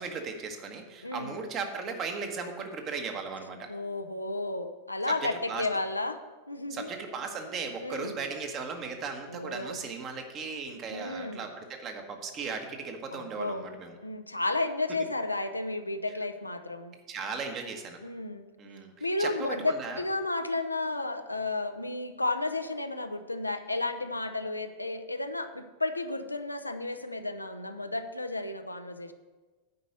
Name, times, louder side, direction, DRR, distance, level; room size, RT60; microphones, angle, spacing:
voice 1, 0.0-3.7 5.1-5.7 6.7-14.0 17.1-18.0 18.6-20.0, right 4 dB, 30° right, 4 dB, 1.3 m, -37 dB
voice 2, 1.0-1.4 3.7-6.2 6.5-6.9 7.8-8.2 9.3-9.8 10.9-11.4 13.1-13.6 14.0-17.0 18.0-18.4 19.0-29.1, left 2 dB, 85° left, 8 dB, 0.6 m, -32 dB
9.6 x 5.2 x 6.5 m, 1.3 s
figure-of-eight pair, 90°, 0 cm